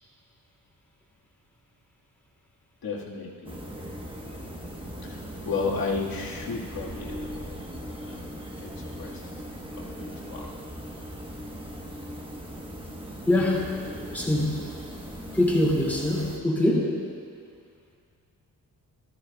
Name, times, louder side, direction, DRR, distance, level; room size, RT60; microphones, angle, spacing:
voice 1, 2.8-3.6 4.8-7.7 8.0-8.3 8.6-10.5, left 4 dB, 80° left, -3 dB, 1.7 m, -34 dB
sound 1, 3.5-16.4, equal, 15° right, 1.0 m, -39 dB
voice 2, 13.3-13.8 14.1-14.6 15.3-17.0, left 1 dB, 5° left, -5 dB, 2.3 m, -24 dB
18.5 x 13.5 x 2.3 m, 2.2 s
wide cardioid pair, 160°, 35 cm